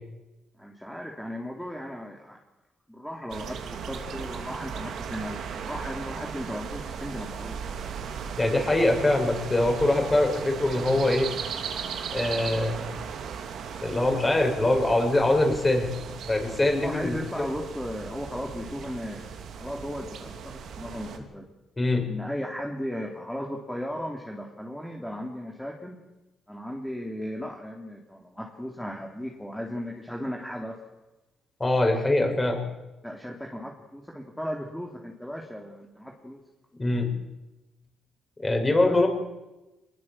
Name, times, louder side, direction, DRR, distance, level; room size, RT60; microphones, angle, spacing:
voice 1, 0.6-2.4 2.9-7.6 16.8-21.4 22.1-26.0 26.5-30.8 33.0-36.4 38.8-39.1, equal, 5° left, 0 dB, 3.3 m, -36 dB
sound 1, 3.3-21.2, right 7 dB, 70° right, 3.3 m, -37 dB
voice 2, 8.4-11.3 12.1-12.9 13.8-15.9 16.3-17.5 21.8-22.1 31.6-32.6 36.8-37.1 38.4-39.1, left 2 dB, 20° left, 2 dB, 6.8 m, -23 dB
24.0 x 21.0 x 7.6 m, 1.0 s
cardioid pair, 90°, 0 cm